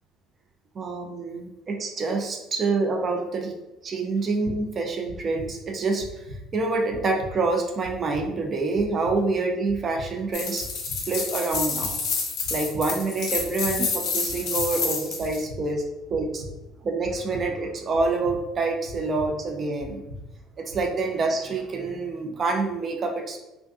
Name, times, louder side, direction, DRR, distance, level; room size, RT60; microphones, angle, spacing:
voice 1, 0.7-3.6 3.8-6.2 6.5-10.7 11.1-11.9 12.5-15.8 16.1-16.4 16.8-20.0 20.6-23.4, right 3 dB, 40° right, 2 dB, 0.5 m, -27 dB
sound 1, 4.4-4.5 5.0-5.5 6.0-6.4 6.9-7.3 7.8-8.2 8.7-9.1 9.6-10.1 10.6-11.0 11.5-11.9 12.4-12.8 13.3-13.7 14.2-14.7 15.2-15.6 16.1-16.5 17.0-17.4 17.9-18.3 18.8-19.3 19.8-20.2 20.7-20.8, left 1 dB, 80° right, 0.7 m, -40 dB
sound 2, 10.3-15.4, left 4 dB, 55° left, 0.6 m, -29 dB
2.5 x 2.2 x 2.5 m, 0.98 s
figure-of-eight pair, 55°, 0 cm